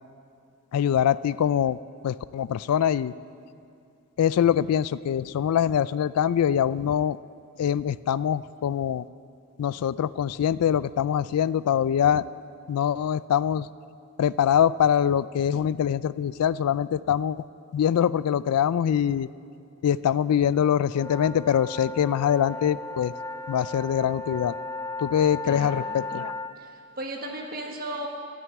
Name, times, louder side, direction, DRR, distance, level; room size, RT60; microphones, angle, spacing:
voice 1, 0.7-1.8 2.0-3.1 4.2-7.2 7.6-9.0 9.6-12.2 12.7-13.7 14.2-17.4 17.7-19.3 19.8-23.1 23.5-24.5 25.0-26.3, left 9 dB, 90° left, 18 dB, 0.3 m, -23 dB
sound 1, 20.9-26.5, left 2 dB, 10° left, 0.4 m, -35 dB
voice 2, 25.4-26.0 26.6-26.7 27.0-28.1, right 1 dB, 40° right, 1 dB, 1.5 m, -35 dB
12.5 x 9.4 x 9.2 m, 2.4 s
head